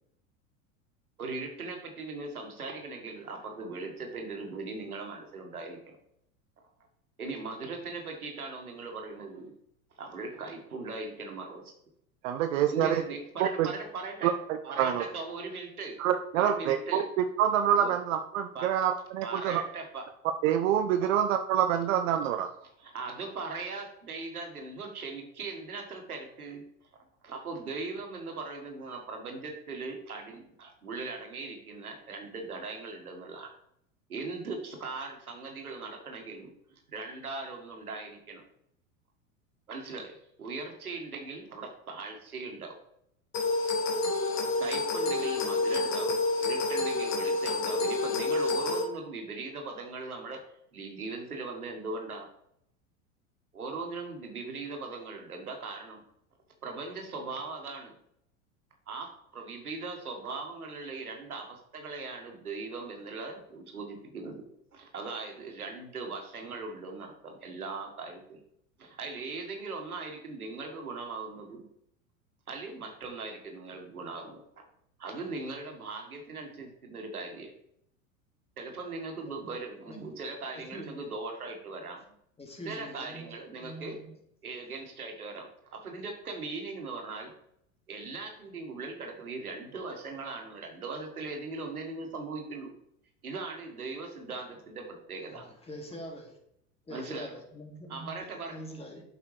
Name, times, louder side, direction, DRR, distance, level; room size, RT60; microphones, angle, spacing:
voice 1, 1.2-6.0 7.2-9.5 10.0-11.7 12.7-14.3 14.6-16.0 16.3-17.0 17.8-18.0 18.5-18.7 19.2-20.1 21.0-21.1 22.6-26.6 27.2-33.5 34.1-36.5 36.9-38.4 39.7-42.8 44.3-50.5 50.7-52.3 53.5-56.0 56.6-57.9 58.9-64.4 64.7-68.4 68.8-71.6 72.5-74.4 75.0-77.5 78.6-82.0 82.7-84.0 84.4-87.3 87.9-92.7 93.2-95.5 96.9-97.3 97.9-98.6, right 3 dB, 90° right, 3 dB, 1.7 m, -39 dB
voice 2, 12.2-13.0 13.4-13.7 14.2-14.3 14.8-15.0 16.0-19.6 20.4-22.5, right 10 dB, 65° right, 8 dB, 0.7 m, -26 dB
sound 1, 43.3-48.8, left 3 dB, 35° left, 2.0 m, -28 dB
voice 3, 80.7-81.0 82.4-83.3 83.6-84.1 95.3-96.4 96.9-99.0, equal, 15° left, 1 dB, 2.2 m, -44 dB
8.3 x 6.6 x 3.3 m, 0.73 s
hypercardioid pair, 90°, 43 cm